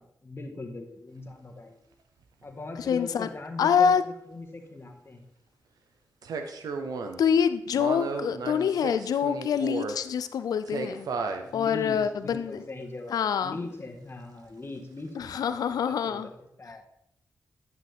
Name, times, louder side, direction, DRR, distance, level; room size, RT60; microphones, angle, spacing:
voice 1, 0.2-1.8 2.4-5.2 11.4-16.3 16.6-16.8, left 2 dB, 40° left, 3 dB, 1.7 m, -40 dB
sound 1, 1.3-1.4 6.2-7.2 7.7-10.0 10.6-11.4 12.2-12.3, right 4 dB, 80° right, 0.8 m, -33 dB
voice 2, 2.9-3.3 3.6-4.0 7.2-11.1 11.5-12.6 13.1-13.6 15.2-16.3, left 7 dB, 80° left, 12 dB, 0.5 m, -25 dB
10.5 x 5.9 x 3.6 m, 0.77 s
supercardioid pair, 40°, 6 cm